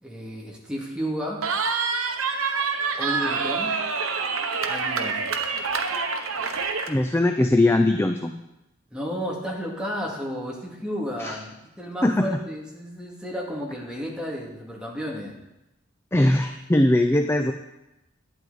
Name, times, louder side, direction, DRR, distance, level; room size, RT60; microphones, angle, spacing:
voice 1, 0.0-1.5 3.0-3.8 4.7-5.4 8.9-15.4, equal, 5° right, -3 dB, 2.1 m, -32 dB
Cheering, 1.4-6.9, right 5 dB, 80° right, 1.0 m, -26 dB
voice 2, 6.9-8.3 11.2-11.4 12.0-12.3 16.1-17.5, left 1 dB, 10° left, 6 dB, 0.4 m, -20 dB
12.0 x 9.2 x 4.0 m, 0.92 s
head